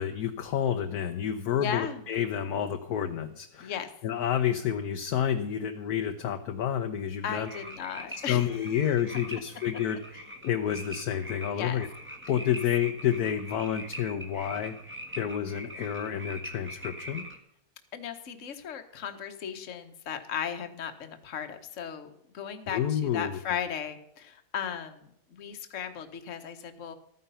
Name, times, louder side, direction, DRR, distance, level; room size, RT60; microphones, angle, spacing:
voice 1, 0.0-3.7 4.0-7.5 8.3-10.0 10.4-11.9 12.3-14.7 15.2-17.2 22.7-23.4, left 9 dB, 65° left, 6 dB, 1.2 m, -29 dB
voice 2, 1.6-2.1 3.6-3.9 7.2-8.8 10.1-10.2 11.5-11.8 17.9-26.9, left 8 dB, 50° left, 7 dB, 1.4 m, -36 dB
sound 1, 7.3-17.4, equal, 5° right, 1.4 m, -43 dB
13.5 x 9.6 x 5.6 m, 0.77 s
omnidirectional pair, 1.9 m